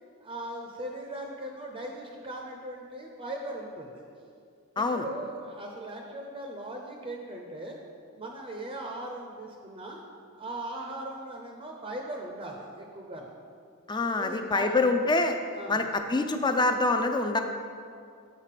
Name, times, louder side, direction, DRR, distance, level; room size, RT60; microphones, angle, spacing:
voice 1, 0.2-4.0 4.8-7.8 8.2-10.0 10.3-13.3 14.2-14.8 15.5-15.9, right 1 dB, 25° right, 1 dB, 0.6 m, -39 dB
voice 2, 4.8-5.1 13.9-15.4 15.7-17.4, left 2 dB, 20° left, 6 dB, 0.4 m, -25 dB
7.4 x 4.0 x 6.6 m, 2.4 s
head